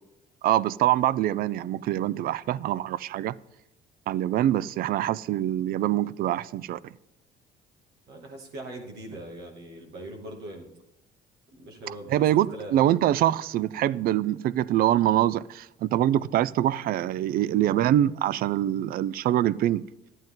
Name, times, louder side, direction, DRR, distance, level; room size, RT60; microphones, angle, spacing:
voice 1, 0.4-3.4 4.1-6.9 12.1-19.8, right 12 dB, 60° right, 0.4 m, -24 dB
voice 2, 8.1-10.7 11.5-12.8, right 1 dB, 80° right, 2.3 m, -41 dB
12.0 x 9.1 x 3.7 m
cardioid pair, 110°, 17 cm